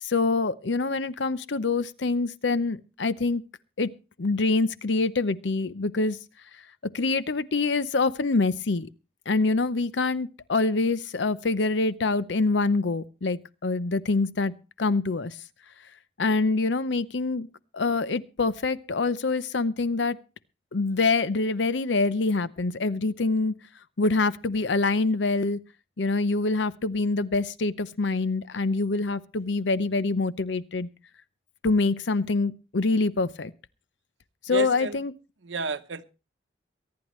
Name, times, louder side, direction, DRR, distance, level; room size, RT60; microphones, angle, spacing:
voice 1, 0.0-3.4 3.8-3.9 4.2-6.2 6.9-8.9 9.3-15.4 16.2-17.5 17.7-20.2 20.7-23.5 24.0-25.6 26.0-30.9 31.6-33.5 34.5-35.1, left 3 dB, 75° left, 0.7 m, -25 dB
voice 2, 34.5-35.0 35.4-36.0, right 4 dB, 85° right, 0.9 m, -31 dB
23.5 x 10.5 x 3.1 m
head